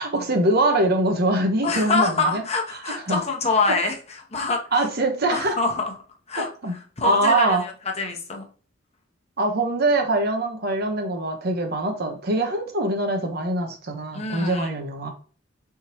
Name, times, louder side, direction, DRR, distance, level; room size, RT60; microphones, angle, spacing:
voice 1, 0.0-2.4 2.9-3.2 4.7-5.6 6.4-6.8 7.0-7.6 9.4-15.1, right 2 dB, 55° right, 4 dB, 1.0 m, -23 dB
voice 2, 1.6-4.0 4.3-4.6 5.3-5.9 6.3-6.5 7.0-7.7 8.0-8.4 14.1-14.7, left 3 dB, 35° left, 2 dB, 0.9 m, -25 dB
4.4 x 3.6 x 2.8 m, 0.40 s
head